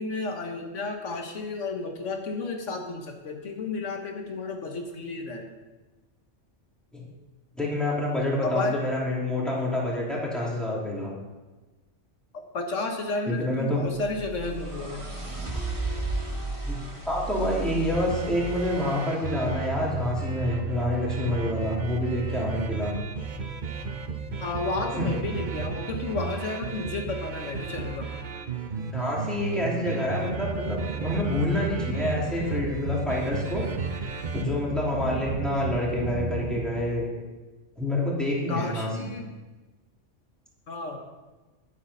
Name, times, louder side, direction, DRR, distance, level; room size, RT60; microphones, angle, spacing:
voice 1, 0.0-5.5 8.4-8.8 12.5-15.1 24.4-28.1 38.5-39.3 40.7-41.0, left 3 dB, 90° left, 3 dB, 1.6 m, -32 dB
voice 2, 7.5-11.1 13.3-13.8 16.6-16.8 17.1-22.9 25.0-25.1 28.9-33.6 34.3-37.1 37.8-39.1, left 1 dB, ahead, -5 dB, 2.9 m, -27 dB
sound 1, 13.9-19.9, right 2 dB, 25° right, 1.6 m, -34 dB
sound 2, 17.9-36.8, right 5 dB, 45° right, 0.9 m, -33 dB
11.0 x 8.3 x 5.6 m, 1.2 s
omnidirectional pair, 1.2 m